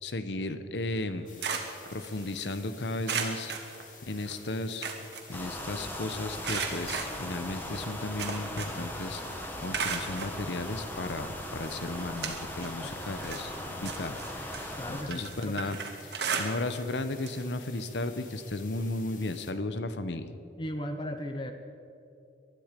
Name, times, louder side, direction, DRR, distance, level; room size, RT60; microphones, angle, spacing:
voice 1, 0.0-1.3 1.9-3.5 4.1-4.9 5.3-15.8 16.0-20.3, left 2 dB, 85° left, 11 dB, 0.9 m, -35 dB
sound 1, 1.0-2.6 3.0-4.3 4.6-5.9 6.4-8.9 9.2-10.4 11.1-11.2 11.7-12.8 13.1-16.9 17.2-17.4 17.8-17.9 19.1-19.2, right 5 dB, 75° right, 1.6 m, -36 dB
sound 2, 1.3-19.5, left 7 dB, 50° left, 1.4 m, -52 dB
sound 3, 5.3-15.0, left 1 dB, 10° left, 1.4 m, -39 dB
voice 2, 14.8-15.7 20.6-21.5, equal, 25° left, 6 dB, 0.8 m, -36 dB
20.0 x 12.0 x 5.2 m, 2.7 s
head